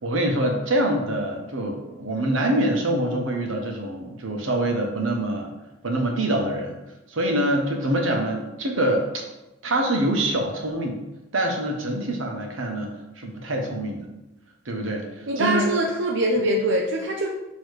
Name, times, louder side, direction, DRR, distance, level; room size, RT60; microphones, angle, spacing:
voice 1, 0.0-5.5 5.8-6.8 7.1-9.2 9.6-11.0 11.3-14.1 14.6-15.7, right 1 dB, 85° right, 2 dB, 1.1 m, -25 dB
voice 2, 15.3-17.3, right 1 dB, 65° right, 0 dB, 0.6 m, -23 dB
6.3 x 3.1 x 4.8 m, 0.99 s
head